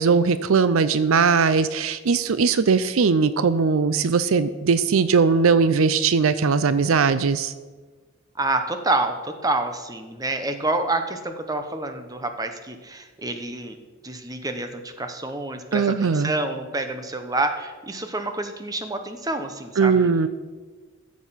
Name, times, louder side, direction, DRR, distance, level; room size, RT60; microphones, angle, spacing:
voice 1, 0.0-7.5 15.7-16.3 19.8-20.3, right 5 dB, 75° right, 14 dB, 0.5 m, -19 dB
voice 2, 8.4-13.8 14.0-20.3, right 2 dB, 15° right, 7 dB, 0.9 m, -28 dB
14.0 x 7.3 x 5.7 m, 1.4 s
head